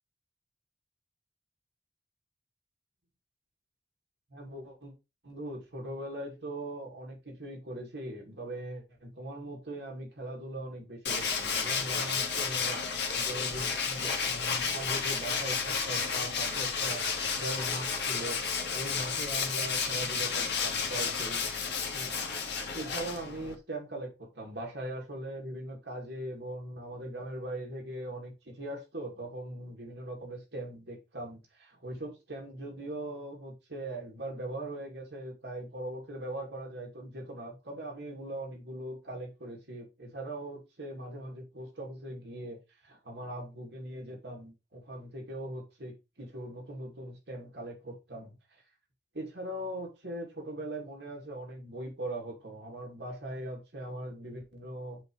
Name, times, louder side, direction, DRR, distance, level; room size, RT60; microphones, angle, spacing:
voice 1, 4.3-4.9 5.2-12.8 13.1-17.0 17.3-18.4 18.7-21.4 21.9-22.2 22.7-48.4 49.1-55.0, right 1 dB, 75° right, 2.4 m, -40 dB
Tools, 11.1-23.6, left 5 dB, 75° left, 1.3 m, -32 dB
7.5 x 3.0 x 4.7 m
head